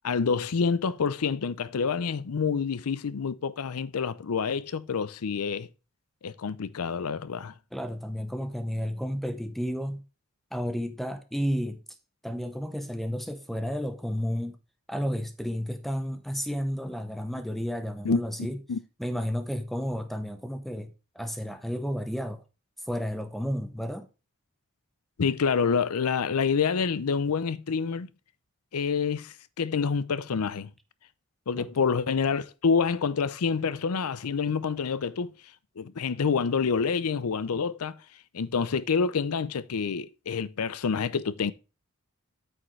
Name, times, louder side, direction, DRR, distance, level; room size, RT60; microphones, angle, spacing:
voice 1, 0.0-5.7 6.2-7.5 18.0-18.8 25.2-28.1 28.7-30.7 31.5-35.3 35.8-38.0 38.3-41.5, left 5 dB, 85° left, 0.5 m, -27 dB
voice 2, 7.7-10.0 10.5-11.8 12.2-14.6 14.9-18.6 19.0-22.4 22.9-24.1 31.6-31.7, equal, ahead, 0.8 m, -32 dB
8.8 x 6.4 x 3.2 m
head